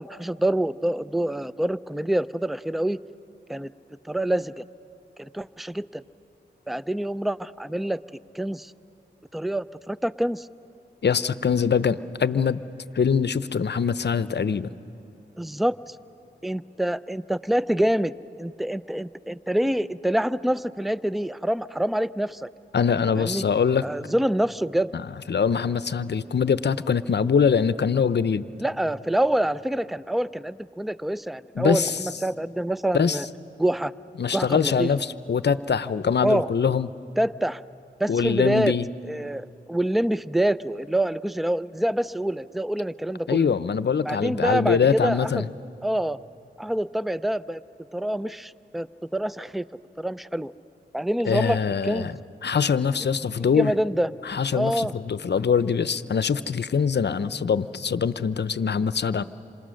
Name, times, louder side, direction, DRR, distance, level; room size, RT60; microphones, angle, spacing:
voice 1, 0.0-3.0 3.5-3.7 4.0-4.6 5.2-6.0 6.7-8.0 8.3-8.7 9.3-10.5 15.4-16.0 16.4-18.1 18.4-22.5 23.2-23.4 23.8-24.9 28.6-33.3 33.6-33.9 34.3-34.9 36.2-36.5 37.2-37.6 38.0-38.8 39.0-43.5 44.0-45.5 45.8-46.2 46.6-47.6 47.9-48.9 49.1-49.6 50.0-50.5 50.9-52.1 53.4-54.1 54.5-54.9, right 1 dB, ahead, 17 dB, 0.5 m, -26 dB
voice 2, 11.0-12.6 12.9-14.7 22.7-23.8 24.9-25.0 25.3-28.5 31.6-32.0 32.9-33.2 34.2-36.9 38.1-38.9 43.3-45.5 51.3-53.7 54.2-59.2, left 6 dB, 60° left, 15 dB, 0.7 m, -23 dB
27.5 x 26.5 x 6.4 m, 2.8 s
cardioid pair, 40°, 20 cm